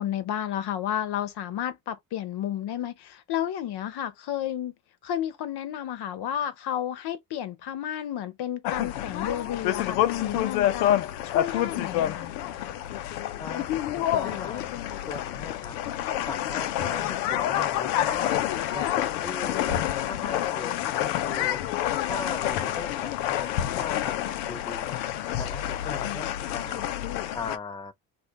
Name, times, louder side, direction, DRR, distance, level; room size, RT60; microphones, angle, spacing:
voice 1, 0.0-4.7 5.0-12.3 21.8-22.0, left 10 dB, 55° left, 0.8 m, -32 dB
sound 1, 8.6-27.6, left 12 dB, 85° left, 0.6 m, -28 dB
voice 2, 13.9-14.6 15.1-15.7 16.3-18.4 18.7-20.7 21.0-21.6 22.1-24.1 24.5-25.0 25.4-26.3 26.5-26.8 27.3-27.9, left 4 dB, 10° left, 0.3 m, -38 dB
2.4 x 2.3 x 3.8 m
hypercardioid pair, 65°, 48 cm